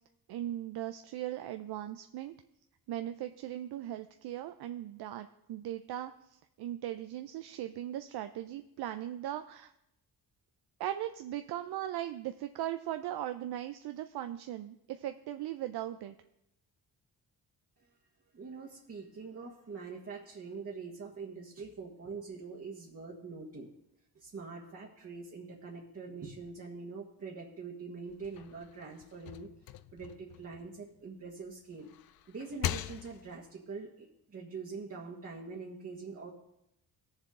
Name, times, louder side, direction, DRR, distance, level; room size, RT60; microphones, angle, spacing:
voice 1, 0.3-2.3 2.9-9.7 10.8-16.1, right 12 dB, 85° right, 8 dB, 0.6 m, -38 dB
voice 2, 18.3-23.7 24.1-29.5 29.9-31.9 32.3-36.3, right 4 dB, 40° right, -2 dB, 1.5 m, -44 dB
sound 1, 28.1-31.3 31.7-33.5, left 12 dB, 65° left, 0.5 m, -41 dB
17.0 x 7.2 x 3.7 m, 0.82 s
cardioid pair, 105°, 38 cm